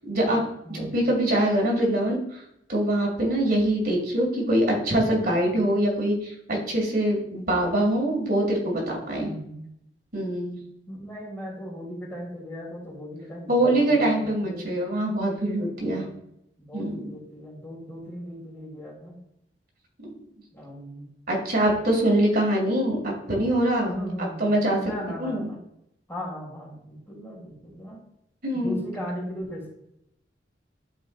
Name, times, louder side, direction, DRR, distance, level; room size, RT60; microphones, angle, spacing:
voice 1, 0.1-0.4 0.7-2.4 2.7-9.3 10.1-10.6 13.5-16.0 16.7-17.2 20.0-20.1 21.3-23.9 24.2-24.8 25.2-25.5 28.4-28.8, right 1 dB, 55° right, -1 dB, 2.2 m, -24 dB
voice 2, 0.6-1.2 9.1-9.6 10.9-14.7 15.8-16.1 16.6-19.2 20.5-21.1 23.9-25.6 26.1-28.0 28.5-29.7, equal, 15° left, -4 dB, 2.9 m, -37 dB
12.0 x 4.5 x 2.5 m, 0.79 s
head